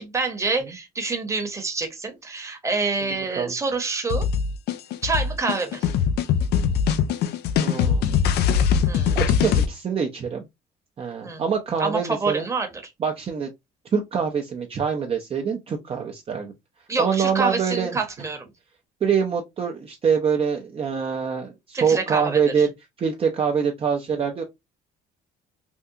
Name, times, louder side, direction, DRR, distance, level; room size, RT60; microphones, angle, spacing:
voice 1, 0.0-4.3 5.0-5.9 8.9-9.2 11.2-11.4 11.8-12.7 16.9-18.5 21.7-22.4, right 4 dB, 15° right, 1.0 m, -27 dB
sound 1, 4.1-9.7, left 7 dB, 75° left, 0.5 m, -21 dB
voice 2, 7.6-8.1 9.1-10.5 11.0-12.5 13.0-13.5 13.9-16.5 17.0-18.0 19.0-22.7 23.0-24.4, right 6 dB, 35° right, 0.6 m, -24 dB
3.5 x 2.3 x 2.7 m
cardioid pair, 110°, 17 cm